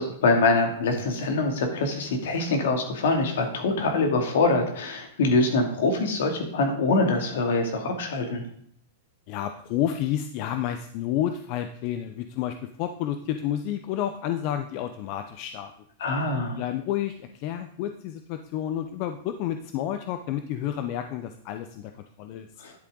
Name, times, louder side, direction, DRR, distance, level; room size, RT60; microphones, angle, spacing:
voice 1, 0.0-8.4 16.0-16.6 22.6-22.7, left 3 dB, 75° left, 3 dB, 2.6 m, -24 dB
voice 2, 9.3-15.7 16.6-22.5, left 11 dB, 45° left, 8 dB, 0.7 m, -30 dB
10.5 x 8.3 x 3.9 m, 0.66 s
hypercardioid pair, 140°, 0 cm